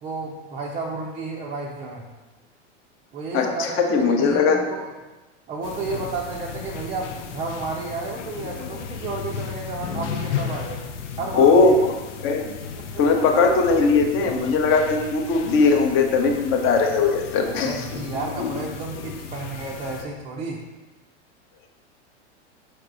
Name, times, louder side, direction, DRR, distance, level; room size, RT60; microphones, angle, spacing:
voice 1, 0.0-2.0 3.1-4.9 5.5-10.9 11.2-11.8 17.5-20.6, right 3 dB, 20° right, -3 dB, 0.4 m, -32 dB
voice 2, 3.3-4.6 11.3-11.9 12.2-12.5 13.0-17.9, left 4 dB, 35° left, 3 dB, 0.7 m, -19 dB
sound 1, 5.6-20.0, left 6 dB, 80° left, 0.6 m, -34 dB
4.6 x 4.5 x 2.5 m, 1.1 s
hypercardioid pair, 105°, 35 cm